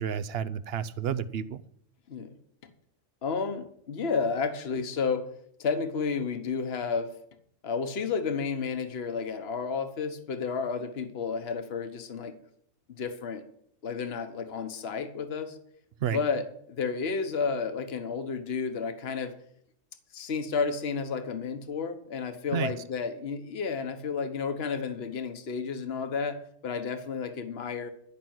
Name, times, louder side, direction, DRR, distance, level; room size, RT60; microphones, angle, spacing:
voice 1, 0.0-1.6 16.0-16.2 22.5-22.7, right 8 dB, 60° right, 0.8 m, -30 dB
voice 2, 3.2-5.3 5.6-7.1 7.6-12.3 12.9-13.4 13.8-15.6 16.1-19.3 20.1-27.9, left 5 dB, 55° left, 1.3 m, -31 dB
12.0 x 6.0 x 9.0 m
omnidirectional pair, 1.3 m